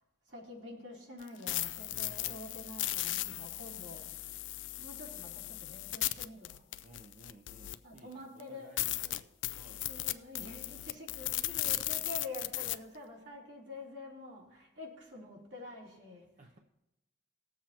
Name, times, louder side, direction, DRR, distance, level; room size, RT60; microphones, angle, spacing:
voice 1, 0.3-4.1 4.8-6.6 7.8-8.7 9.8-16.3, left 2 dB, 70° right, -3 dB, 3.1 m, -47 dB
sound 1, 1.2-8.0 8.4-8.5 8.8-12.7, left 16 dB, 80° left, 0.4 m, -36 dB
voice 2, 6.8-9.9 16.4-16.6, right 1 dB, 45° right, 2 dB, 0.7 m, -58 dB
19.0 x 7.4 x 2.9 m, 0.91 s
head